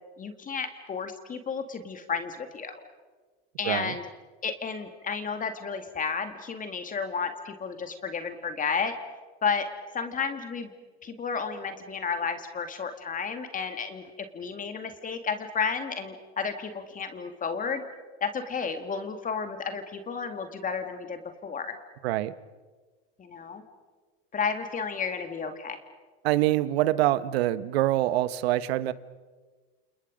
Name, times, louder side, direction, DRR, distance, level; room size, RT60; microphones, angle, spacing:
voice 1, 0.2-2.8 3.6-4.0 4.4-8.9 9.4-9.7 9.9-10.7 11.0-17.8 18.2-21.8 23.2-23.6 24.3-25.8, left 5 dB, 25° left, 7 dB, 2.2 m, -32 dB
voice 2, 22.0-22.3 26.2-28.9, right 15 dB, 75° right, 15 dB, 1.2 m, -25 dB
29.0 x 28.5 x 5.2 m, 1.4 s
supercardioid pair, 110°, 31 cm